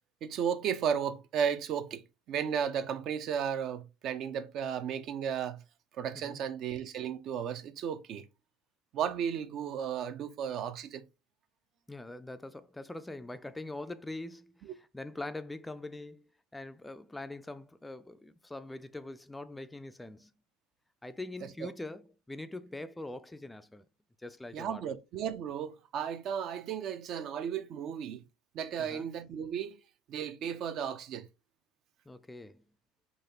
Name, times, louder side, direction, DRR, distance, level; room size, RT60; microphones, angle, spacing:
voice 1, 0.2-2.0 2.3-5.6 5.9-8.3 8.9-11.0 14.6-14.7 21.6-21.7 24.5-28.2 28.5-29.8 30.1-31.3, right 8 dB, 55° right, 0.5 m, -34 dB
voice 2, 11.9-20.3 21.0-23.9 24.2-24.9 28.8-29.1 32.1-32.6, left 2 dB, 10° left, 0.3 m, -43 dB
3.9 x 2.9 x 2.7 m
hypercardioid pair, 80°, 0 cm